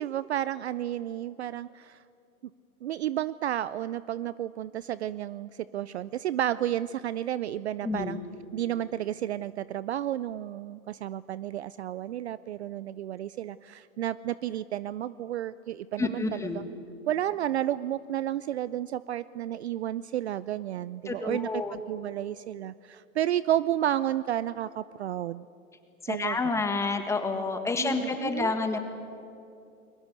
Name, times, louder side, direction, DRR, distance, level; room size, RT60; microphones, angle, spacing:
voice 1, 0.0-2.0 2.8-8.2 8.5-16.6 17.1-25.5 26.1-26.4 27.8-28.5, right 12 dB, 50° right, 18 dB, 0.5 m, -32 dB
voice 2, 7.8-8.2 16.0-16.7 21.1-21.8 26.0-28.8, left 3 dB, 5° left, 7 dB, 1.6 m, -29 dB
29.0 x 22.0 x 8.2 m, 2.7 s
hypercardioid pair, 145°, 44 cm